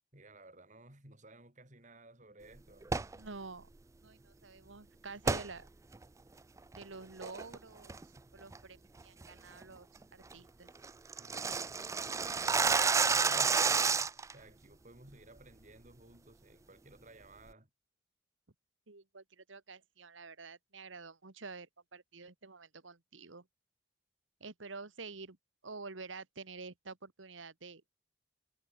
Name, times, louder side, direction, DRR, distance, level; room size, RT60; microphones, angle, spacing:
voice 1, 0.1-2.9 11.2-11.8 12.5-17.7, right 2 dB, 40° right, 6.0 m, -57 dB
sound 1, 2.8-3.2 5.2-5.5 5.9-6.0 6.6-6.8 7.2-7.5 7.9-8.2 8.5-8.6 9.0-9.3 9.6-9.7 10.0-10.1 10.3-10.4 10.7-14.3, right 5 dB, 15° right, 0.3 m, -30 dB
voice 2, 3.1-3.7 4.0-5.7 6.7-9.9 10.1-10.7 13.3-14.0 18.9-23.4 24.4-25.4 25.6-27.8, right 4 dB, 80° right, 1.6 m, -49 dB
head